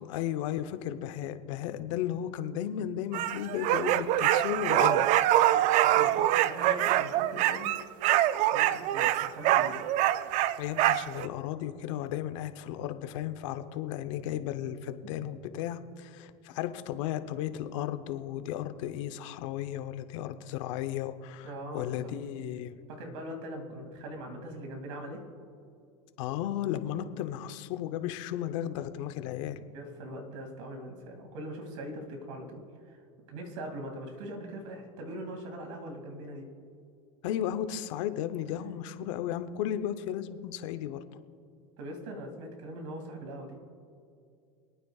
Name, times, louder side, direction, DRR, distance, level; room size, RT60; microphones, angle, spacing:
voice 1, 0.0-5.1 10.6-22.8 26.2-29.6 37.2-41.0, left 11 dB, 75° left, 9 dB, 0.8 m, -34 dB
sound 1, 3.1-11.3, right 13 dB, 50° right, 0.4 m, -25 dB
voice 2, 5.8-7.7 8.5-9.8 15.1-15.2 21.4-22.1 22.9-25.2 29.6-32.6 32.9-33.0 33.3-36.4 41.8-43.6, right 1 dB, 80° right, 3 dB, 2.5 m, -41 dB
26.0 x 9.3 x 2.4 m, 2.4 s
supercardioid pair, 120°, 16 cm